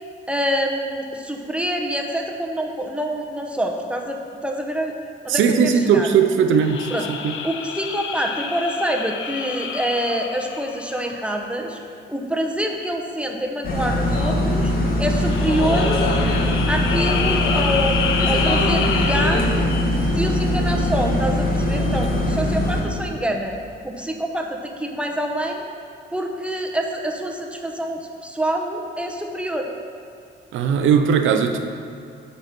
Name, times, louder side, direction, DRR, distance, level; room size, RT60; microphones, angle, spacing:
voice 1, 0.3-4.9 5.2-6.1 6.9-7.1 7.4-11.8 12.1-14.7 15.0-16.0 16.7-19.4 19.9-23.6 23.8-25.6 26.1-29.7, equal, 5° right, 1 dB, 1.0 m, -26 dB
voice 2, 5.3-7.3 30.5-31.6, right 7 dB, 80° right, 6 dB, 0.7 m, -18 dB
sound 1, 6.5-11.3 15.1-19.9, left 6 dB, 70° left, 0.6 m, -29 dB
sound 2, 13.6-22.8, left 1 dB, 50° left, 1.6 m, -21 dB
8.2 x 5.5 x 6.0 m, 2.4 s
cardioid pair, 90°, 20 cm